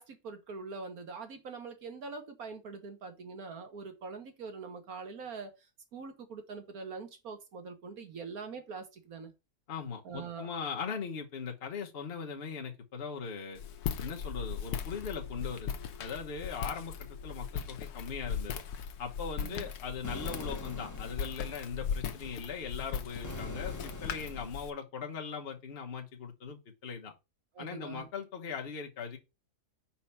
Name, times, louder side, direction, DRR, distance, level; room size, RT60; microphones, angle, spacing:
voice 1, 0.0-5.5 5.9-9.3 10.1-10.5 19.4-19.7 27.6-28.1, right 4 dB, 65° right, 1.7 m, -43 dB
voice 2, 9.7-13.6 14.0-18.6 19.0-27.1 27.6-29.2, left 6 dB, 40° left, 1.2 m, -40 dB
Walk footsteps, 13.5-24.7, left 7 dB, 75° left, 1.2 m, -38 dB
sound 1, 20.0-21.5 23.2-24.7, left 2 dB, 20° left, 0.5 m, -43 dB
4.9 x 4.4 x 5.7 m
omnidirectional pair, 1.7 m